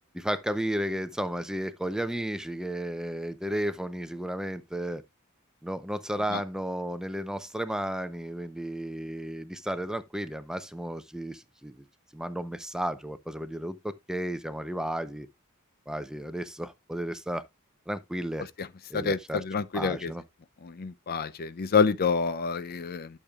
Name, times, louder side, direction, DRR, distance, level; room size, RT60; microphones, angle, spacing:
voice 1, 0.1-5.0 5.6-11.8 12.1-15.3 15.9-17.4 17.9-18.5 18.9-20.2, equal, 5° right, 0.6 m, -33 dB
voice 2, 18.9-20.1 20.7-23.1, left 5 dB, 45° left, 0.5 m, -27 dB
12.0 x 6.6 x 2.3 m
head